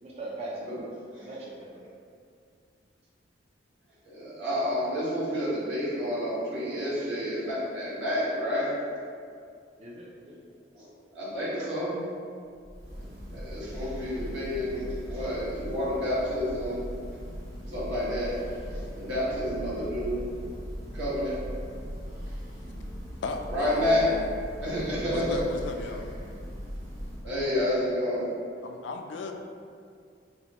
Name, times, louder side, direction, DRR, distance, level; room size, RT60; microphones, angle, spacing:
voice 1, 0.0-0.7 1.2-1.8 9.8-10.4 22.6-22.9, right 2 dB, 35° right, -5 dB, 0.3 m, -41 dB
voice 2, 4.0-8.7 10.7-10.9 11.1-12.1 13.3-16.9 17.7-18.4 18.7-20.3 20.9-21.4 22.2-22.3 23.5-24.1 24.6-25.4 27.2-28.3, equal, 75° right, -10 dB, 1.3 m, -29 dB
Church bell, 12.5-27.5, equal, 50° right, 0.9 m, -39 dB
voice 3, 23.2-24.3 25.1-26.1 28.6-29.3, left 3 dB, 70° left, 4 dB, 0.3 m, -35 dB
4.2 x 2.1 x 2.9 m, 2.3 s
head